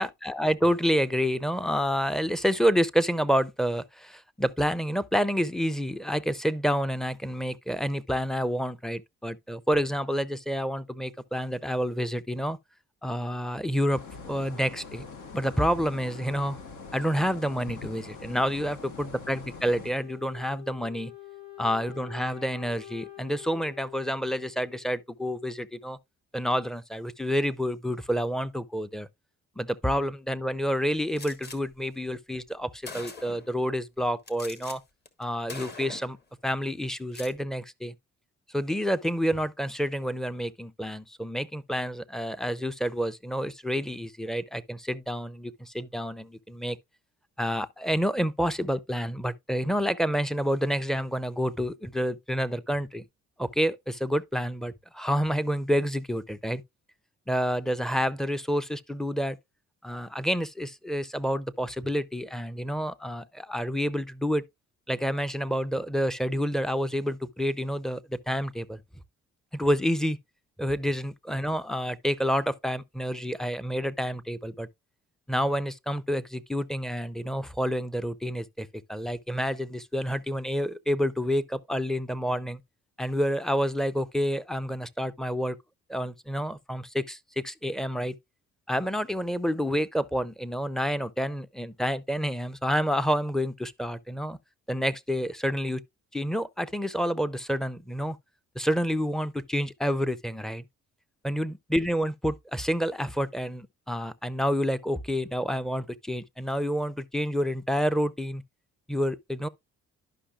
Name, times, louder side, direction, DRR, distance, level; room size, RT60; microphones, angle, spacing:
voice 1, 0.0-12.6 13.0-15.0 15.3-16.6 16.9-21.1 21.6-26.0 26.3-29.1 29.6-34.8 35.2-36.2 36.4-37.9 38.5-46.8 47.4-53.0 53.4-56.6 57.3-59.4 59.8-64.4 64.9-68.8 69.5-70.2 70.6-74.7 75.3-82.6 83.0-85.6 85.9-88.1 88.7-94.4 94.7-95.8 96.1-98.2 98.6-100.6 101.2-108.4 108.9-109.5, equal, ahead, 0.4 m, -28 dB
sound 1, 13.9-19.9, left 4 dB, 80° left, 1.4 m, -43 dB
Wind instrument woodwind instrument, 20.0-25.0, left 9 dB, 65° left, 3.2 m, -46 dB
Gunshot gunfire, 31.2-31.6 32.4-32.5 32.8-33.5 34.3-34.8 35.1-35.2 35.5-36.2 37.0-37.4, left 3 dB, 35° left, 1.3 m, -42 dB
11.5 x 5.4 x 2.3 m
cardioid pair, 90°, 30 cm